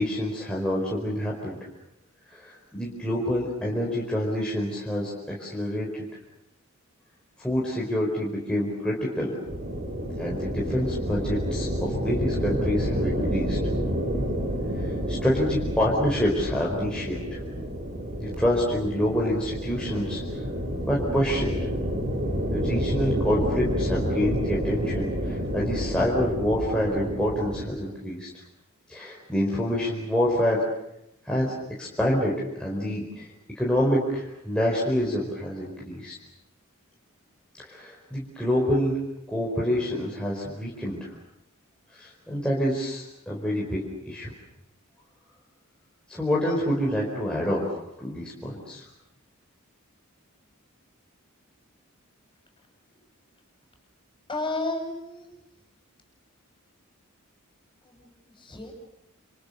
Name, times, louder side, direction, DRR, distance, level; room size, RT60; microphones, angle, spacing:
voice 1, 0.0-1.6 2.3-6.0 7.4-9.4 10.2-13.6 14.8-17.4 18.2-20.2 20.9-21.6 22.5-28.3 28.9-30.6 31.2-33.2 33.5-36.1 37.6-39.0 39.3-41.1 41.9-43.8 44.1-44.3 46.1-47.6 48.0-48.8, equal, 5° left, -5 dB, 4.8 m, -27 dB
sound 1, 9.5-27.7, equal, 45° right, 6.6 m, -29 dB
voice 2, 54.3-55.3 57.8-58.7, left 2 dB, 25° left, 3 dB, 7.4 m, -33 dB
29.0 x 28.5 x 6.7 m, 0.81 s
head